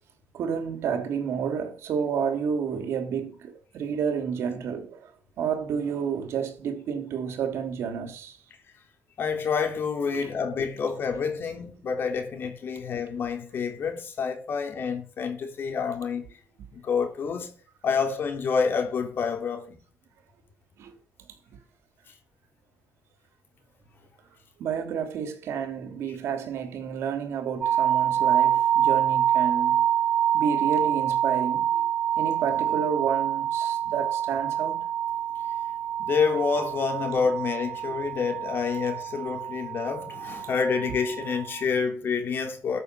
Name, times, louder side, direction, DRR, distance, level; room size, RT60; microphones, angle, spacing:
voice 1, 0.3-5.1 5.4-8.4 10.1-10.3 20.8-20.9 24.6-29.8 30.3-31.9 32.2-34.9 37.8-37.9, right 7 dB, 75° right, 3.0 m, -30 dB
voice 2, 9.2-16.4 16.7-17.5 17.8-19.8 36.0-42.8, left 5 dB, 55° left, 3.2 m, -28 dB
sound 1, 27.6-41.6, right 10 dB, 40° right, 1.7 m, -26 dB
13.0 x 6.8 x 6.9 m
cardioid pair, 120°, 5 cm